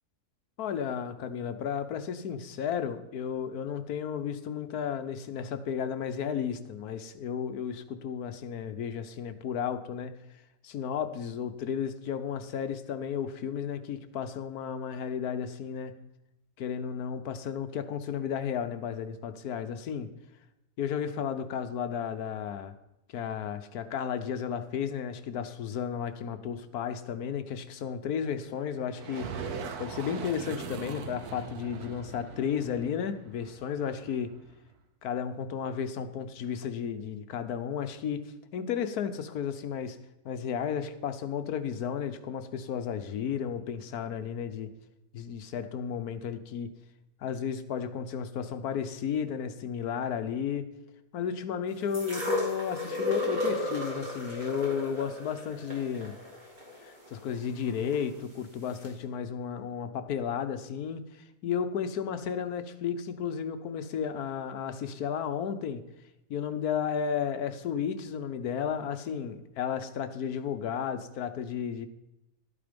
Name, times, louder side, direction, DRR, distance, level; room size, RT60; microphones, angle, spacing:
voice 1, 0.6-10.1 10.6-15.9 16.6-20.1 20.8-22.7 23.1-29.3 29.8-34.3 35.0-40.0 40.2-44.7 45.1-46.7 47.2-50.7 51.1-56.2 56.8-61.0 61.4-65.8 66.3-71.9, left 7 dB, 75° left, 11 dB, 1.3 m, -33 dB
sound 1, 28.9-34.6, right 6 dB, 75° right, 1.5 m, -41 dB
sound 2, 51.9-58.0 58.8-58.9, left 2 dB, 30° right, 2.3 m, -34 dB
12.5 x 8.8 x 5.2 m, 0.90 s
omnidirectional pair, 1.7 m